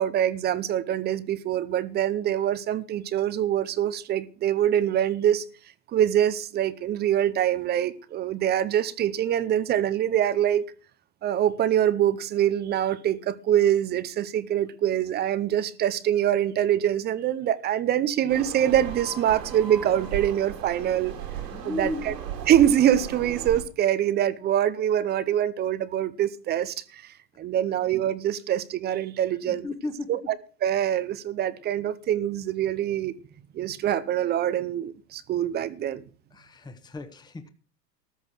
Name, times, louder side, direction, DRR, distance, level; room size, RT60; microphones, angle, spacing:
voice 1, 0.0-5.4 5.9-10.6 11.2-21.2 21.6-22.1 22.5-29.7 30.1-30.2 30.6-33.1 33.5-36.0, right 11 dB, 20° right, 0.6 m, -24 dB
sound 1, 18.3-23.6, right 8 dB, 80° right, 3.5 m, -36 dB
voice 2, 21.5-22.2 29.5-30.1 36.3-37.5, left 2 dB, 10° left, 1.1 m, -35 dB
13.5 x 6.4 x 7.5 m
hypercardioid pair, 125°, 49 cm